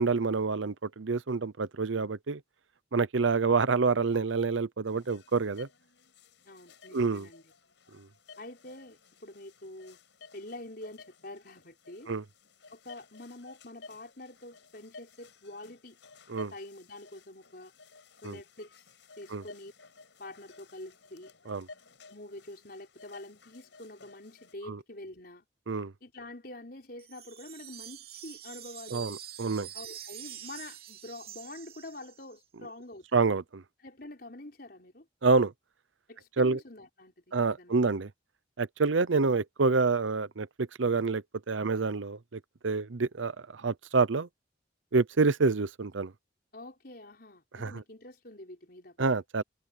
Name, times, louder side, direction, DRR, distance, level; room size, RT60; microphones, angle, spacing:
voice 1, 0.0-2.4 2.9-5.7 6.9-7.3 8.0-8.1 12.1-12.2 16.3-16.5 18.2-18.4 19.3-19.4 21.5-21.7 24.7-24.8 25.7-25.9 28.9-29.7 33.1-33.6 35.2-35.5 36.4-36.6 37.3-38.1 38.6-44.3 44.9-46.1 47.6-47.7 49.0-49.4, right 4 dB, 90° right, 0.8 m, -27 dB
sound 1, 4.9-24.5, left 4 dB, 75° left, 5.5 m, -55 dB
voice 2, 6.4-7.5 8.4-10.0 10.3-12.1 12.7-16.0 16.5-17.7 18.2-18.9 19.2-19.7 20.2-21.3 22.1-25.4 26.0-29.2 29.7-33.1 33.8-35.1 36.1-37.8 46.5-49.1, left 1 dB, 50° left, 4.9 m, -46 dB
sound 2, 27.0-32.4, right 11 dB, 50° right, 3.0 m, -46 dB
head